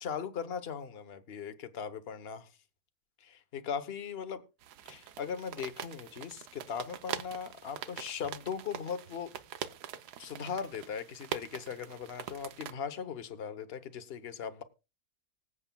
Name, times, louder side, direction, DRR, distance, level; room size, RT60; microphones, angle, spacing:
voice 1, 0.0-2.5 3.2-4.4 4.8-9.3 10.2-14.6, left 7 dB, 45° left, 1.1 m, -39 dB
sound 1, 4.6-12.7, right 10 dB, 85° right, 1.3 m, -43 dB
24.5 x 8.3 x 2.3 m
omnidirectional pair, 1.7 m